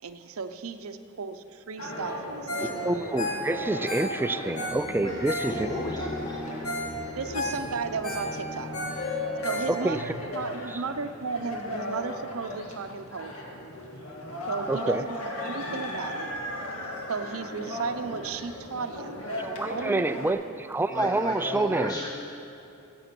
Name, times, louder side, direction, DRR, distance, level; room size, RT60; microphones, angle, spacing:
voice 1, 0.0-2.8 7.2-8.7 9.4-13.6 14.5-16.3 17.1-19.2 19.7-20.3, right 4 dB, 75° right, 9 dB, 0.6 m, -35 dB
sound 1, 1.8-20.3, left 1 dB, 90° left, 1.8 m, -37 dB
Ringtone, 2.5-2.8 3.0-5.9 6.3-6.4 6.6-6.9 7.2-10.1 10.5-10.6, left 1 dB, 70° left, 2.2 m, -34 dB
voice 2, 2.6-5.7 9.7-10.0 10.7-10.8 14.7-15.0 19.4-22.1, right 2 dB, 10° right, 11 dB, 0.3 m, -28 dB
sound 2, 4.7-10.2, left 3 dB, 35° left, 2.1 m, -38 dB
voice 3, 5.0-6.5 9.5-9.8 20.9-22.1, equal, 20° left, -3 dB, 1.1 m, -34 dB
15.0 x 7.9 x 6.0 m, 3.0 s
head